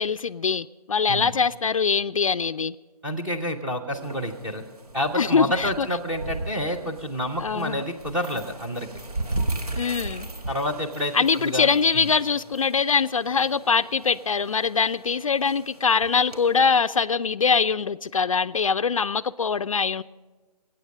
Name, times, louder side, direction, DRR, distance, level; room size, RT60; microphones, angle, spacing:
voice 1, 0.0-2.8 5.1-5.9 7.4-7.8 9.7-10.3 11.1-20.0, left 5 dB, 55° left, 0.4 m, -23 dB
voice 2, 3.0-4.6 4.9-8.9 10.5-11.7 12.0-12.1, equal, 5° right, 0.7 m, -28 dB
sound 1, 3.9-16.7, right 2 dB, 70° right, 1.8 m, -37 dB
21.0 x 8.6 x 6.5 m
figure-of-eight pair, 150°, 20 cm